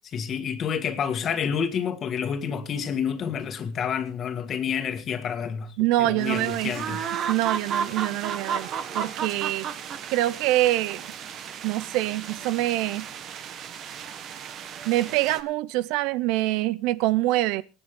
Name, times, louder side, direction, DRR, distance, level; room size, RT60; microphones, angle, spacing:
voice 1, 0.1-7.1, left 7 dB, 30° left, 1.8 m, -29 dB
voice 2, 5.8-7.0 7.3-8.7 8.9-9.7 10.1-11.0 11.6-13.1 14.9-17.6, right 16 dB, 60° right, 0.6 m, -25 dB
sound 1, 6.2-15.4, right 7 dB, 35° right, 1.4 m, -34 dB
24.0 x 9.8 x 3.7 m
cardioid pair, 165°, 0 cm